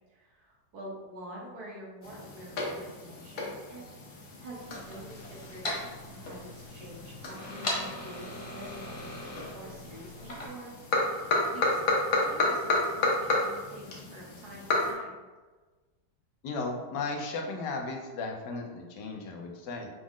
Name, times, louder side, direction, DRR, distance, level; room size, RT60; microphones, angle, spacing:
voice 1, 0.0-10.7 11.0-15.1, right 1 dB, 65° right, -3 dB, 1.5 m, -47 dB
sound 1, 2.0-14.9, left 2 dB, 55° left, 1.2 m, -32 dB
sound 2, 4.6-10.5, left 1 dB, 40° left, 0.5 m, -40 dB
voice 2, 16.4-19.9, left 3 dB, 80° left, 2 dB, 1.3 m, -35 dB
6.0 x 2.1 x 3.6 m, 1.3 s
omnidirectional pair, 1.9 m